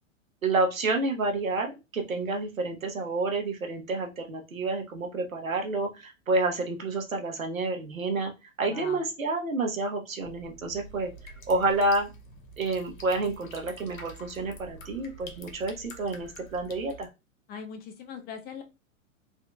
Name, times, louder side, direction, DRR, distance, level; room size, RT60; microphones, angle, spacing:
voice 1, 0.4-8.3 8.6-11.1 11.5-12.1 12.6-17.1, right 2 dB, 90° right, 3 dB, 1.0 m, -29 dB
voice 2, 8.6-9.0 17.5-18.6, left 6 dB, 25° left, 7 dB, 0.6 m, -40 dB
sound 1, 10.2-17.1, equal, 85° left, 0.9 m, -47 dB
3.5 x 2.7 x 2.2 m, 0.26 s
hypercardioid pair, 105°, 39 cm